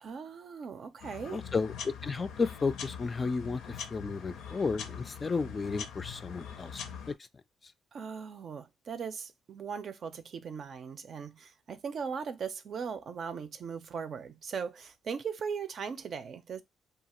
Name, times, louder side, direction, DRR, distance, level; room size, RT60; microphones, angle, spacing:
voice 1, 0.0-1.4 7.9-16.6, right 6 dB, 55° right, 0.5 m, -39 dB
sound 1, 1.0-7.1, left 7 dB, 85° left, 0.5 m, -43 dB
voice 2, 1.3-6.8, left 4 dB, 30° left, 0.3 m, -33 dB
2.8 x 2.4 x 2.9 m
cardioid pair, 90°, 0 cm